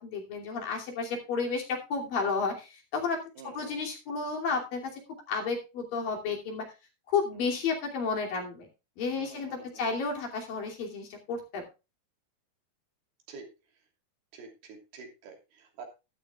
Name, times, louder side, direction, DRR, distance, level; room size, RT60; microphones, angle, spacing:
voice 1, 0.0-3.2 3.4-4.9 5.3-6.7 7.1-8.7 9.0-11.6, left 4 dB, 65° left, 2 dB, 4.4 m, -32 dB
voice 2, 3.4-3.8 7.4-7.5 9.2-9.8 13.3-13.5 14.3-15.9, right 5 dB, 90° right, 3 dB, 4.9 m, -48 dB
13.0 x 12.5 x 2.4 m, 0.28 s
omnidirectional pair, 4.4 m